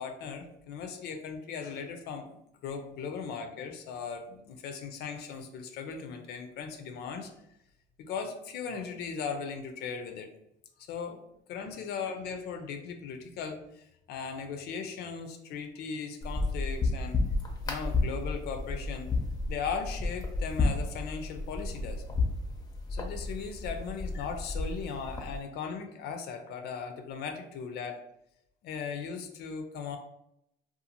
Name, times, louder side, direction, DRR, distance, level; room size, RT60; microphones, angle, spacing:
voice 1, 0.0-7.3 8.0-10.3 10.9-11.2 11.5-17.2 17.7-19.1 19.5-22.0 22.9-28.0 28.6-30.0, left 6 dB, 70° left, 5 dB, 0.4 m, -38 dB
sound 1, 16.2-25.4, left 3 dB, 25° left, 0.5 m, -32 dB
2.5 x 2.3 x 2.8 m, 0.79 s
cardioid pair, 110°, 17 cm